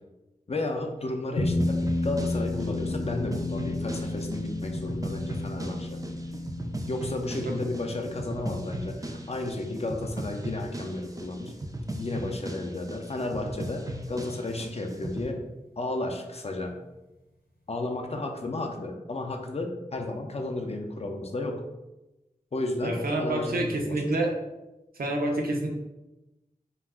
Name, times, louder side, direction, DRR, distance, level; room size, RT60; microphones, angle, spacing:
voice 1, 0.5-6.0 6.9-11.6 12.0-15.4 15.8-16.8 17.7-21.6 22.5-24.1, left 2 dB, 45° left, 3 dB, 0.4 m, -33 dB
sound 1, 1.4-12.1, left 2 dB, 85° left, 0.6 m, -33 dB
sound 2, 1.6-15.3, right 1 dB, 25° right, 0.3 m, -37 dB
voice 2, 22.8-24.4 25.0-25.7, right 1 dB, 85° right, 0 dB, 0.5 m, -27 dB
2.3 x 2.2 x 3.4 m, 0.99 s
wide cardioid pair, 45°, 15 cm